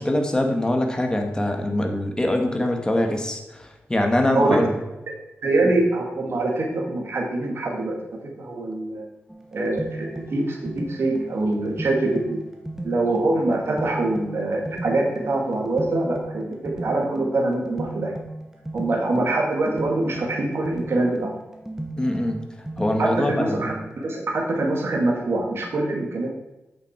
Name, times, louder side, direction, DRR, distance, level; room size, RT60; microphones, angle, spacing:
voice 1, 0.0-4.7 22.0-22.4 22.8-23.6, left 1 dB, 15° left, 3 dB, 1.7 m, -23 dB
voice 2, 4.3-4.7 5.4-8.0 8.4-9.0 9.5-12.4 12.8-18.1 18.7-21.3 23.0-26.3, right 2 dB, 65° right, -1 dB, 2.5 m, -24 dB
sound 1, 9.3-24.2, right 1 dB, 10° right, 1.6 m, -36 dB
8.6 x 7.1 x 4.7 m, 1.0 s
wide cardioid pair, 85°, 4 cm